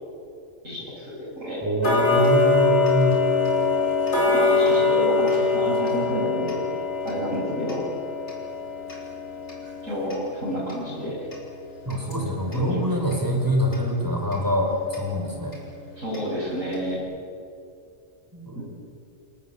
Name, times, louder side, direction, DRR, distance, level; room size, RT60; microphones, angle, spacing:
voice 1, 0.6-1.6 4.3-6.6 7.0-7.8 9.8-11.3 12.5-13.0 16.0-17.0 18.5-18.6, equal, 85° right, -9 dB, 8.2 m, -30 dB
voice 2, 1.6-3.2 11.9-15.5 18.3-18.6, equal, 15° right, 0 dB, 5.4 m, -24 dB
Tick-tock, 1.8-12.7 13.1-13.2 13.7-13.8 14.3-14.4 14.9-15.0 15.5-15.6 16.1-16.2 16.7-16.8, left 4 dB, 60° left, 5.9 m, -24 dB
28.5 x 19.0 x 8.6 m, 2.4 s
omnidirectional pair, 1.3 m